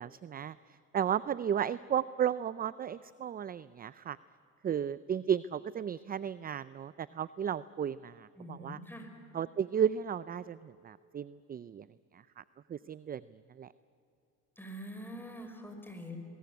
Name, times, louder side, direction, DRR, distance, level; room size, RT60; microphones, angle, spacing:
voice 1, 0.0-4.2 4.6-8.8 9.3-11.9 12.1-12.4 12.7-13.2 13.6-13.7, right 9 dB, 25° right, 17 dB, 0.5 m, -34 dB
voice 2, 8.4-9.1 14.6-16.2, equal, 5° left, 4 dB, 5.7 m, -44 dB
22.0 x 21.5 x 9.4 m, 2.7 s
supercardioid pair, 85°, 35 cm